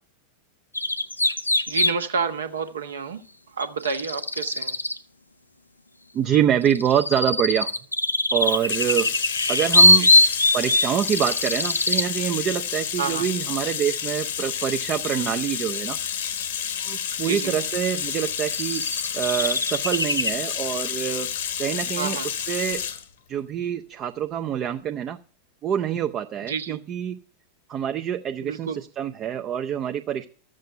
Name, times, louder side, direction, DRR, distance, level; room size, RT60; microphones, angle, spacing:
sound 1, 0.7-2.0 3.6-5.0 6.3-12.1 16.4-16.5 17.6-17.7 18.1-20.3, left 2 dB, 85° left, 0.5 m, -22 dB
voice 1, 1.7-3.2 3.5-4.8 10.0-10.2 13.0-13.2 17.2-17.5 22.0-22.3 26.5-26.8 28.4-28.8, right 5 dB, 65° right, 7 dB, 1.2 m, -29 dB
voice 2, 6.1-7.7 8.3-9.1 9.5-10.1 10.5-16.0 16.8-18.8 19.1-21.3 21.6-22.8 23.3-25.2 25.6-27.2 27.7-30.3, right 9 dB, 30° right, 5 dB, 0.6 m, -26 dB
Bathtub (filling or washing), 8.4-23.0, left 8 dB, 60° left, 1.0 m, -30 dB
13.0 x 7.5 x 5.5 m, 0.43 s
figure-of-eight pair, 90°, 0 cm